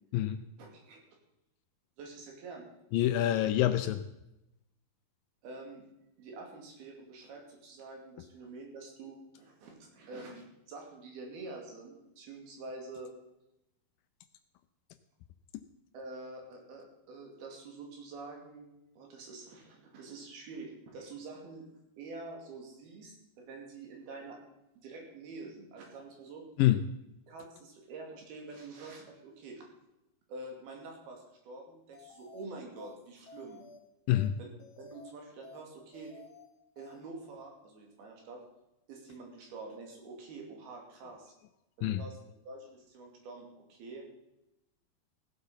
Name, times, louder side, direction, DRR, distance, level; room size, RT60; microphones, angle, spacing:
voice 1, 0.6-1.0 2.0-2.7 5.4-5.8 6.2-13.1 15.9-18.7 19.0-21.6 22.0-24.4 24.8-26.4 27.3-29.7 30.3-33.6 34.4-34.5 34.8-36.1 36.8-38.4 38.9-41.3 41.8-42.2 42.5-44.0, right 3 dB, 80° right, 1 dB, 4.4 m, -47 dB
voice 2, 2.9-4.0 26.6-26.8 34.1-34.4 41.8-42.0, left 13 dB, 80° left, 10 dB, 2.2 m, -26 dB
sound 1, 31.9-32.4 32.8-32.9 33.3-33.8 34.1-34.3 34.6-35.1 35.4-35.6 35.9-36.4 36.8-36.9, left 4 dB, 40° left, 2.3 m, -53 dB
16.5 x 8.0 x 5.6 m, 0.88 s
omnidirectional pair, 4.4 m